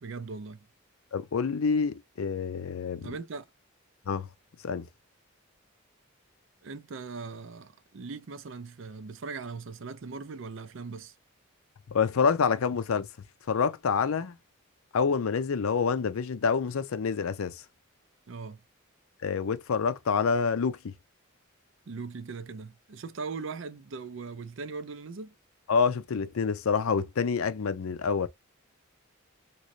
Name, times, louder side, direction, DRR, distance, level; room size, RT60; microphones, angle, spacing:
voice 1, 0.0-0.7 3.0-3.4 6.6-11.2 18.3-18.6 21.9-25.3, right 4 dB, 65° right, 0.5 m, -39 dB
voice 2, 1.1-3.1 4.1-4.3 4.6-4.9 11.9-13.1 13.5-14.4 14.9-17.6 19.2-20.9 25.7-28.3, left 5 dB, 80° left, 0.5 m, -27 dB
3.1 x 3.0 x 2.6 m
head